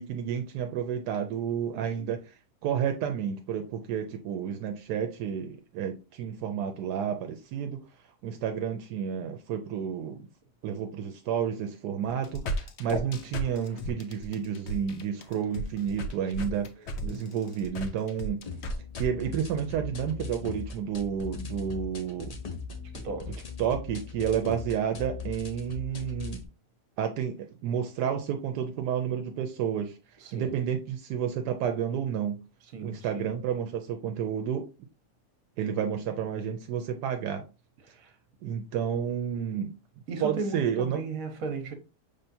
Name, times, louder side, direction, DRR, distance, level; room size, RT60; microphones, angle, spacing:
voice 1, 0.0-2.4 2.6-7.8 8.2-10.3 10.6-18.4 19.0-22.4 23.6-26.4 27.0-30.0 30.3-32.4 32.8-34.7 35.6-37.4 38.4-39.8 40.2-41.0, right 8 dB, 80° right, 1.1 m, -31 dB
voice 2, 1.7-2.1 17.0-17.2 22.9-23.4 30.2-30.6 32.7-33.3 37.8-38.1 40.1-41.7, right 4 dB, 60° right, 1.3 m, -36 dB
sound 1, 12.0-19.1, equal, 60° left, 0.7 m, -35 dB
sound 2, 18.4-26.4, left 5 dB, 85° left, 0.3 m, -39 dB
5.6 x 3.4 x 2.6 m
omnidirectional pair, 1.7 m